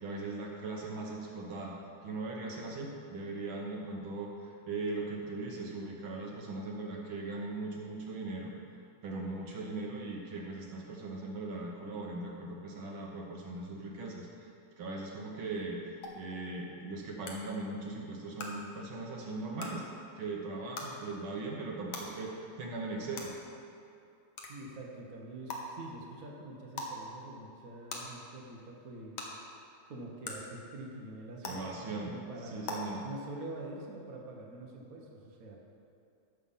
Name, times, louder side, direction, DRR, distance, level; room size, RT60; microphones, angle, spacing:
voice 1, 0.0-1.8 2.0-8.5 9.0-19.9 20.2-23.3 31.4-32.2 32.4-33.0, right 3 dB, 70° right, -1 dB, 1.9 m, -39 dB
sound 1, 16.0-16.1 17.2-17.3 18.4-18.5 19.6-19.7 20.7-20.9 21.9-22.0 23.1-23.2 24.4-24.5 25.5-25.6 26.7-26.9 27.9-28.0 29.2-29.3 30.2-30.3 31.4-31.5 32.6-32.7, left 4 dB, 70° left, 1.9 m, -39 dB
voice 2, 24.5-29.2 29.9-32.7 33.0-35.6, right 2 dB, 45° right, -1 dB, 1.5 m, -45 dB
13.5 x 5.7 x 5.6 m, 2.5 s
omnidirectional pair, 2.4 m